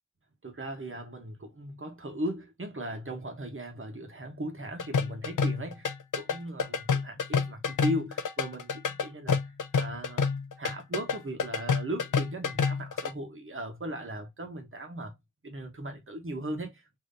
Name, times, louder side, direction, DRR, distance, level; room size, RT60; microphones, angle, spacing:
voice 1, 0.4-9.4 9.7-10.3 10.6-15.2 15.4-17.0, right 1 dB, 40° right, 1.2 m, -37 dB
sound 1, 4.8-13.1, left 5 dB, 75° left, 0.6 m, -28 dB
3.8 x 3.0 x 2.6 m
wide cardioid pair, 90°, 31 cm